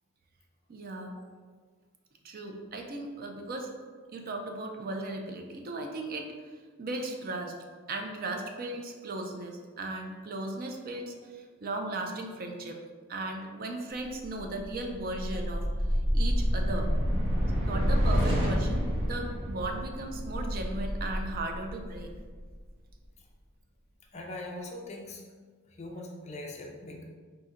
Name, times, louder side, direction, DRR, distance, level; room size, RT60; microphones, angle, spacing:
voice 1, 0.7-1.1 2.2-3.7 4.1-6.3 6.8-7.6 7.9-12.8 13.1-16.9 17.6-22.1, right 2 dB, 45° right, 3 dB, 0.4 m, -37 dB
sound 1, 14.2-22.6, equal, 75° right, 1.1 m, -29 dB
voice 2, 24.1-25.2 25.8-27.0, left 2 dB, 30° left, 0 dB, 0.5 m, -41 dB
4.2 x 2.6 x 3.6 m, 1.5 s
head